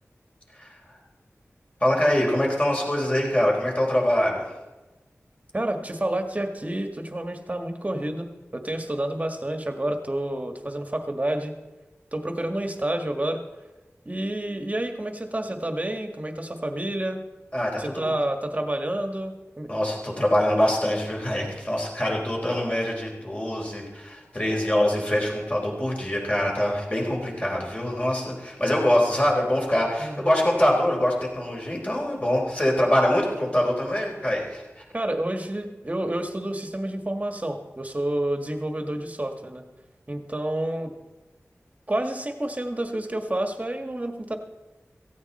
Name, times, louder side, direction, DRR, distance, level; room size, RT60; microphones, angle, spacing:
voice 1, 1.8-4.5 17.5-18.2 19.7-34.9, left 1 dB, 25° left, -2 dB, 4.4 m, -24 dB
voice 2, 5.5-11.5 12.1-13.4 14.0-17.2 17.8-19.7 30.0-30.3 34.9-39.6 40.1-40.9 41.9-44.4, right 1 dB, 30° right, 5 dB, 1.7 m, -29 dB
17.5 x 15.0 x 4.3 m, 1.1 s
wide cardioid pair, 75°, 5 cm